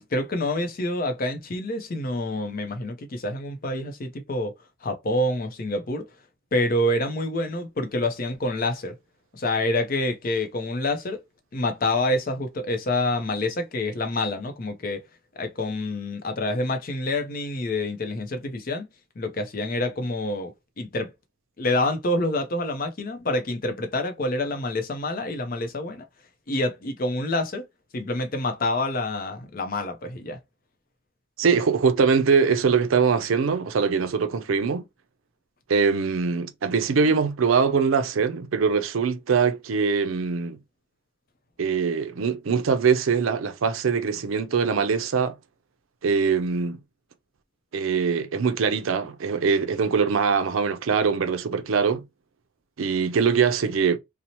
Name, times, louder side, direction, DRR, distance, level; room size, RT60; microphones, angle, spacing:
voice 1, 0.0-4.5 4.8-6.1 6.5-9.0 9.3-11.2 11.5-15.0 15.3-18.9 19.2-21.1 21.6-26.1 26.5-27.7 27.9-30.4, left 1 dB, 45° left, 0.5 m, -27 dB
voice 2, 31.4-34.9 35.7-40.6 41.6-45.3 46.0-46.8 47.7-52.0 52.8-54.0, right 5 dB, 80° right, 0.5 m, -22 dB
2.7 x 2.0 x 2.9 m
head